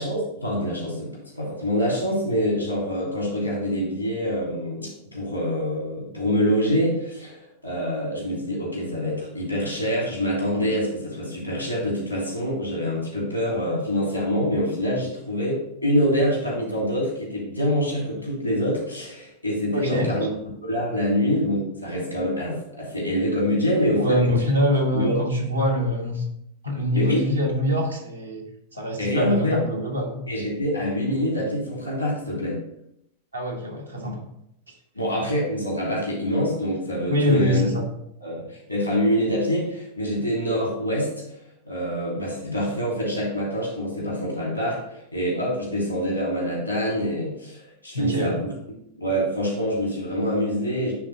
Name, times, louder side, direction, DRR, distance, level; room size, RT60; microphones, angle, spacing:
voice 1, 0.0-20.3 20.6-24.2 24.9-25.1 26.9-27.2 29.0-29.6 30.3-32.6 34.9-37.7 38.2-41.1 41.6-48.5 49.0-50.9, equal, 90° left, -3 dB, 2.7 m, -25 dB
voice 2, 19.7-20.1 24.0-26.2 26.6-28.4 28.7-30.2 33.3-34.3 37.1-37.8 47.9-48.4, equal, 85° right, -1 dB, 1.5 m, -24 dB
9.2 x 3.8 x 4.0 m, 0.78 s
figure-of-eight pair, 90°, 0 cm